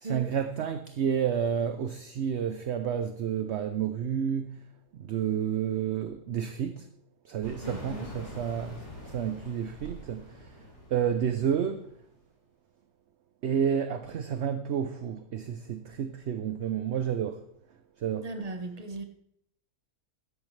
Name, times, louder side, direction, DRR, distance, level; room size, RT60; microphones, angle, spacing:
voice 1, 0.0-4.6 5.0-6.8 7.3-8.8 9.0-10.3 10.9-11.8 13.4-17.4 18.0-18.3, right 8 dB, 60° right, 0.7 m, -30 dB
sound 1, 7.4-12.1, equal, 30° left, 5.6 m, -45 dB
voice 2, 7.6-8.1 18.2-19.1, right 3 dB, 25° right, 1.1 m, -37 dB
13.5 x 11.0 x 3.2 m
omnidirectional pair, 1.7 m